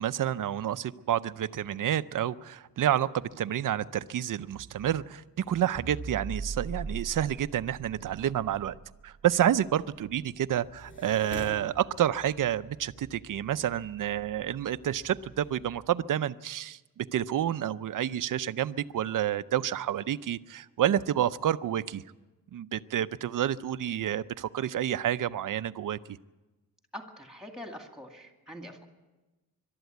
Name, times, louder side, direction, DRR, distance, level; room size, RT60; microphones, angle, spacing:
voice 1, 0.0-8.8 9.0-22.0 22.5-26.2, right 11 dB, 60° right, 14 dB, 0.6 m, -29 dB
sound 1, 5.7-10.2, right 4 dB, 20° right, 0.9 m, -40 dB
sound 2, 10.6-15.9, left 1 dB, 35° left, 7.4 m, -49 dB
voice 2, 26.9-28.9, equal, ahead, 4 dB, 2.2 m, -44 dB
22.5 x 12.5 x 9.4 m, 1.1 s
wide cardioid pair, 155°, 37 cm